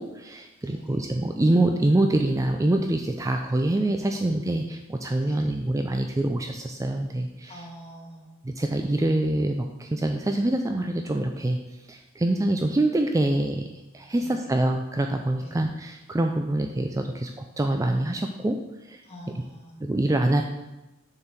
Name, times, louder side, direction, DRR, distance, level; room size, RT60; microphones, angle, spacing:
voice 1, 0.0-7.6 8.4-11.6 11.9-13.7 13.9-18.6 18.9-19.0 19.8-20.4, right 1 dB, 15° right, 4 dB, 0.4 m, -25 dB
voice 2, 0.6-1.0 4.1-4.2 5.2-5.5 7.5-8.3 14.2-14.5 15.4-15.6 19.1-19.7, equal, 30° left, -2 dB, 1.9 m, -45 dB
6.8 x 4.6 x 6.6 m, 1.0 s
head